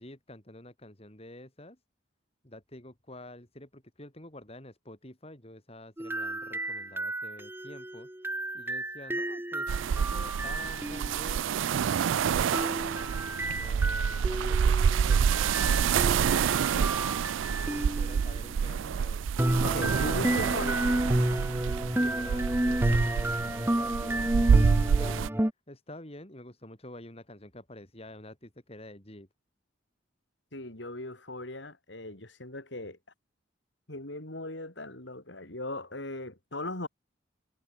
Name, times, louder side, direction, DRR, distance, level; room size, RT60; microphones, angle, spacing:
voice 1, 0.0-1.8 2.4-8.1 8.5-12.8 13.5-15.4 17.4-19.3 21.9-24.6 25.0-25.2 25.7-29.3, left 1 dB, 30° left, 4.4 m, -48 dB
sound 1, 6.0-11.3 12.5-18.3 19.4-25.5, right 1 dB, 10° right, 1.0 m, -31 dB
sound 2, 9.7-25.3, right 7 dB, 90° right, 0.4 m, -27 dB
voice 2, 19.6-20.9 30.5-33.0 33.9-36.9, left 2 dB, 70° left, 5.3 m, -38 dB
head